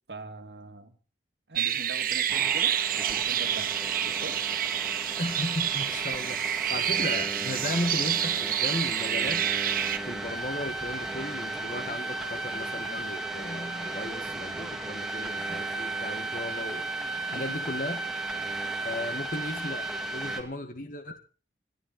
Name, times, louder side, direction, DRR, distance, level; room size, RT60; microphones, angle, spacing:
voice 1, 0.1-0.9 1.5-3.8 4.0-4.6 17.3-17.6, right 2 dB, 75° right, 7 dB, 2.3 m, -42 dB
sound 1, 1.6-10.0, right 10 dB, 55° right, 1.2 m, -28 dB
sound 2, 2.3-20.4, right 2 dB, 5° right, 2.4 m, -35 dB
voice 2, 5.2-9.4 10.0-16.8 17.3-18.0 18.8-21.2, left 1 dB, 50° left, 6 dB, 1.8 m, -35 dB
28.5 x 10.5 x 4.2 m, 0.39 s
head